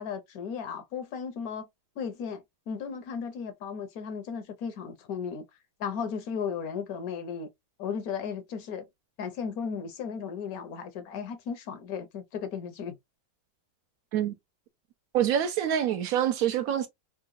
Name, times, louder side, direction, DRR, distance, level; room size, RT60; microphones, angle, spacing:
voice 1, 0.0-1.7 2.0-5.4 5.8-7.5 7.8-8.9 9.2-13.0, left 6 dB, 70° left, 1.1 m, -35 dB
voice 2, 15.1-16.9, right 10 dB, 70° right, 0.9 m, -26 dB
3.7 x 2.2 x 2.5 m
omnidirectional pair, 1.7 m